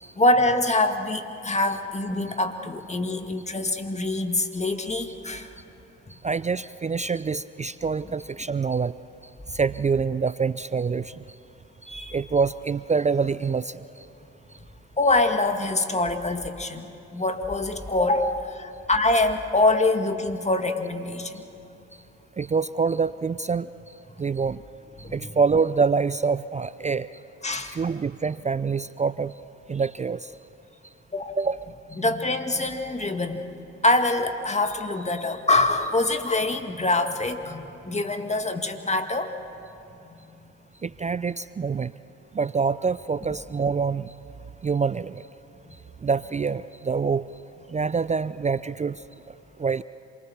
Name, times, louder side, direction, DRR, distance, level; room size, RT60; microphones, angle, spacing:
voice 1, 0.2-5.5 6.1-6.2 11.9-12.2 15.0-16.9 17.1-21.4 25.0-25.2 27.4-27.8 31.1-31.3 32.0-33.4 33.8-39.3, left 2 dB, 20° left, 6 dB, 1.9 m, -24 dB
voice 2, 6.2-8.9 9.5-11.2 12.1-13.8 22.4-23.7 24.2-24.6 25.1-27.1 27.7-29.3 29.7-30.3 31.4-31.7 40.8-41.9 42.3-44.1 44.6-45.2 46.0-47.2 47.7-49.0 49.6-49.8, right 5 dB, 20° right, 16 dB, 0.4 m, -25 dB
27.0 x 20.0 x 7.2 m, 2.8 s
hypercardioid pair, 55°, 34 cm